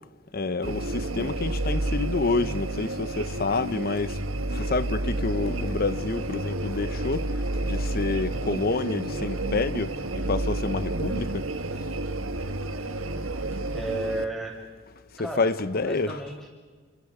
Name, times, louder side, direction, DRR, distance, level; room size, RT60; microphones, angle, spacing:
voice 1, 0.3-4.2 4.5-11.5 15.2-16.2, left 3 dB, 45° left, 0.8 m, -28 dB
sound 1, 0.6-14.2, right 1 dB, 75° right, 1.5 m, -30 dB
voice 2, 13.7-14.6 15.2-16.5, right 1 dB, ahead, 6.5 m, -33 dB
29.5 x 28.0 x 4.9 m
head